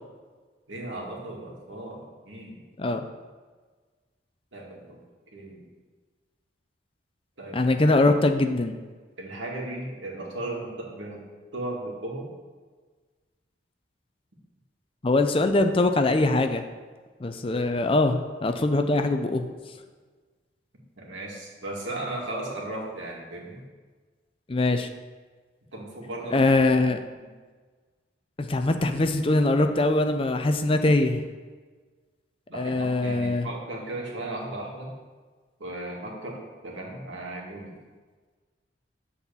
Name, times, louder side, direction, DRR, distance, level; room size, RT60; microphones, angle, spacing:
voice 1, 0.7-2.6 4.5-5.0 5.3-5.6 7.4-7.6 9.2-11.3 11.5-12.3 21.0-23.6 25.7-26.4 32.5-34.9 35.6-37.7, right 2 dB, 85° right, -2 dB, 2.0 m, -36 dB
voice 2, 7.5-8.8 15.0-16.6 17.2-19.5 24.5-24.9 26.3-27.0 28.4-31.2 32.5-33.5, left 2 dB, 30° left, 7 dB, 0.5 m, -22 dB
8.4 x 4.2 x 6.9 m, 1.4 s
head